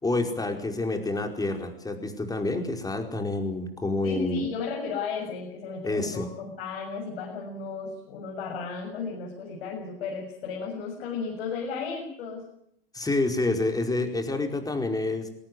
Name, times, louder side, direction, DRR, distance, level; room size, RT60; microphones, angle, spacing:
voice 1, 0.0-4.4 5.8-6.3 12.9-15.3, left 2 dB, 10° left, 5 dB, 4.9 m, -28 dB
voice 2, 4.0-12.5, left 5 dB, 75° left, -1 dB, 7.1 m, -34 dB
22.0 x 17.5 x 9.4 m, 0.75 s
hypercardioid pair, 105°, 30 cm